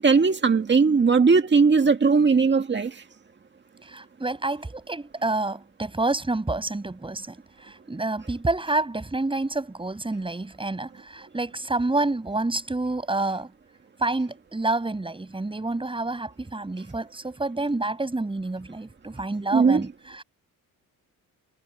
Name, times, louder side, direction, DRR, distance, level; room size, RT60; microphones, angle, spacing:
voice 1, 0.0-2.9 19.5-19.8, right 5 dB, 30° right, 2.0 m, -19 dB
voice 2, 3.8-7.4 7.6-13.5 14.0-20.2, right 2 dB, 15° right, 7.2 m, -28 dB
cardioid pair, 130°, 34 cm